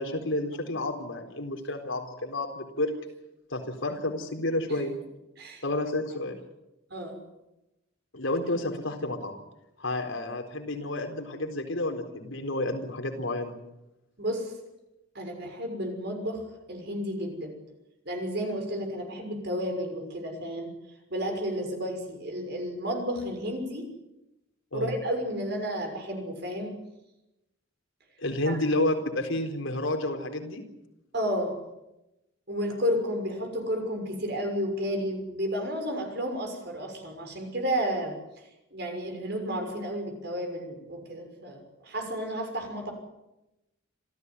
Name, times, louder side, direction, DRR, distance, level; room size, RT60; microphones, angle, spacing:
voice 1, 0.0-2.9 3.5-4.9 5.6-6.4 8.1-9.3 9.8-13.5 24.7-24.9 28.2-30.6, left 1 dB, 70° left, 4 dB, 4.1 m, -30 dB
voice 2, 14.2-14.6 15.1-17.6 18.0-20.7 21.1-23.9 24.7-26.7 28.4-28.6 31.1-31.6 32.5-42.9, equal, 55° right, 4 dB, 6.3 m, -32 dB
27.0 x 15.0 x 9.8 m, 0.93 s
head